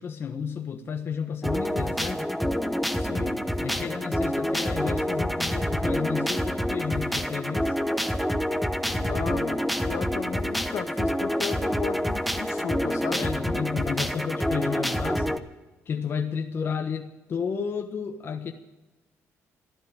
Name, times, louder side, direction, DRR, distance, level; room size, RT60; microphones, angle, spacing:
voice 1, 0.0-2.2 3.6-7.8 13.1-15.4 15.9-18.5, left 6 dB, 45° left, 5 dB, 1.2 m, -32 dB
sound 1, 1.4-15.4, equal, ahead, 0.9 m, -27 dB
voice 2, 2.9-3.4 8.8-13.3, left 8 dB, 65° left, 8 dB, 1.4 m, -35 dB
14.0 x 11.5 x 8.8 m, 1.1 s
cardioid pair, 120°, 5 cm